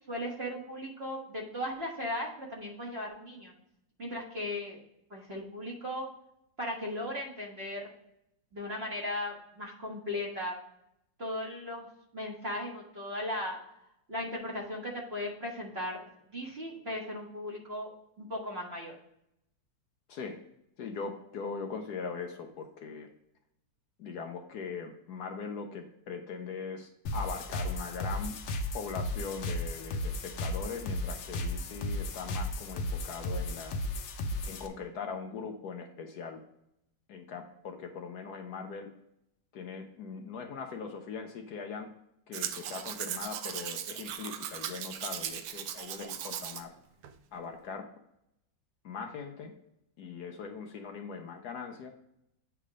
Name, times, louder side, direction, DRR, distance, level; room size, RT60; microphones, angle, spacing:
voice 1, 0.1-3.5 4.0-4.8 5.1-6.1 6.6-7.9 8.5-10.5 11.2-11.9 12.1-13.6 14.1-16.0 16.3-17.9 18.2-19.0, left 1 dB, 35° right, -3 dB, 1.8 m, -37 dB
voice 2, 20.8-23.1 24.0-28.4 28.7-33.8 34.5-36.4 37.1-38.9 39.5-41.9 42.3-46.7 47.3-47.9 48.8-49.5 50.0-51.9, left 5 dB, 65° left, 4 dB, 1.1 m, -40 dB
sound 1, 27.1-34.7, left 1 dB, 85° left, 1.5 m, -35 dB
Domestic sounds home sounds, 42.3-46.6 47.0-47.1, right 9 dB, 75° right, 1.2 m, -38 dB
8.5 x 3.5 x 4.8 m, 0.79 s
omnidirectional pair, 2.0 m